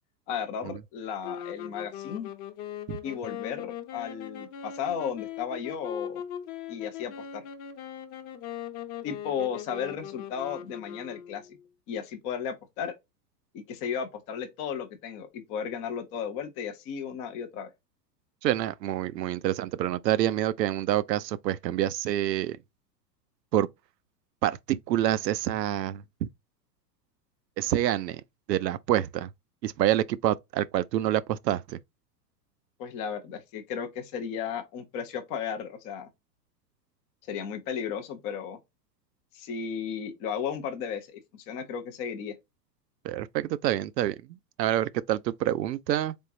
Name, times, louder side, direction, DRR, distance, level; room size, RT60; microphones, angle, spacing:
voice 1, 0.3-2.3 3.0-6.2 6.7-7.4 9.0-11.4 11.9-12.9 13.5-17.7 32.8-36.1 37.3-38.6 39.3-42.3, left 7 dB, 15° left, 0.3 m, -34 dB
sound 1, 1.2-11.6, left 9 dB, 40° left, 0.9 m, -40 dB
voice 2, 18.4-22.6 23.5-23.7 24.4-26.3 27.6-28.2 28.5-29.3 29.6-31.8 43.0-44.2 44.6-46.2, right 12 dB, 75° right, 0.6 m, -27 dB
3.7 x 3.5 x 2.6 m
hypercardioid pair, 110°, 50 cm